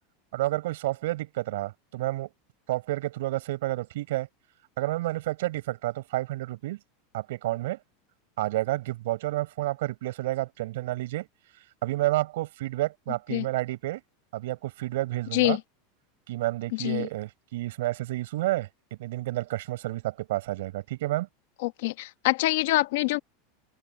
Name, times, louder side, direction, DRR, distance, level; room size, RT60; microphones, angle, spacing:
voice 1, 0.3-2.3 2.7-4.3 4.8-6.8 7.1-7.8 8.4-11.3 11.8-14.0 14.3-15.6 16.3-18.7 19.0-21.3, right 17 dB, 70° right, 6.0 m, -30 dB
voice 2, 16.7-17.1 21.6-23.2, left 19 dB, 60° left, 1.5 m, -25 dB
supercardioid pair, 170°, 0 cm